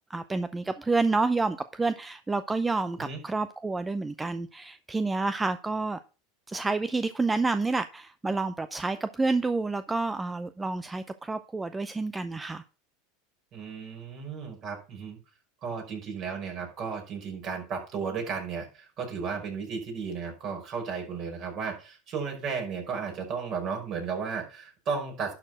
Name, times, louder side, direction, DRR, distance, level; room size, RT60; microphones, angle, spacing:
voice 1, 0.1-6.0 6.5-12.6, right 3 dB, 15° right, 0.6 m, -29 dB
voice 2, 13.5-15.2 15.6-25.3, right 5 dB, 45° right, 5.5 m, -34 dB
11.5 x 4.6 x 6.1 m
hypercardioid pair, 105°, 0 cm